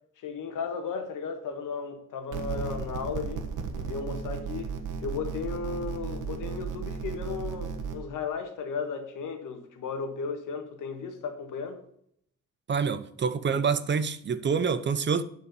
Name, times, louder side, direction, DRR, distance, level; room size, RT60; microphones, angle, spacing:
voice 1, 0.2-11.8, left 5 dB, 90° left, 1.8 m, -35 dB
sound 1, 2.3-8.0, right 6 dB, 80° right, 1.5 m, -34 dB
voice 2, 12.7-15.2, right 6 dB, 35° right, 0.7 m, -27 dB
9.8 x 5.0 x 6.8 m
cardioid pair, 140°, 30 cm